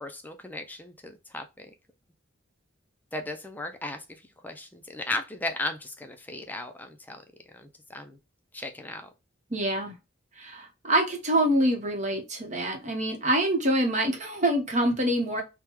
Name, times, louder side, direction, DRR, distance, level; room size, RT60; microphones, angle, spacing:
voice 1, 0.0-1.7 3.1-7.2 7.5-8.2 8.5-9.1, left 2 dB, 10° left, 0.4 m, -36 dB
voice 2, 9.5-9.9 10.4-15.4, right 1 dB, 35° right, 0.9 m, -25 dB
3.5 x 2.2 x 2.9 m
head